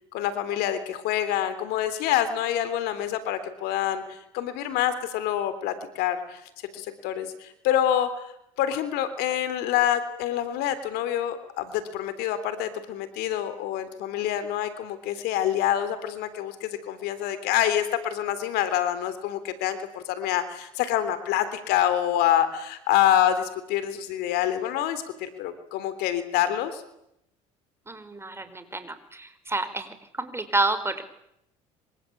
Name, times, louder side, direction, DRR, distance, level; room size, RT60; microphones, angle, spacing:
voice 1, 0.1-8.3 8.6-26.8, left 11 dB, 70° left, 12 dB, 3.6 m, -26 dB
voice 2, 27.9-31.1, right 2 dB, 15° right, 11 dB, 5.0 m, -29 dB
26.5 x 25.0 x 8.7 m, 0.79 s
hypercardioid pair, 75°, 17 cm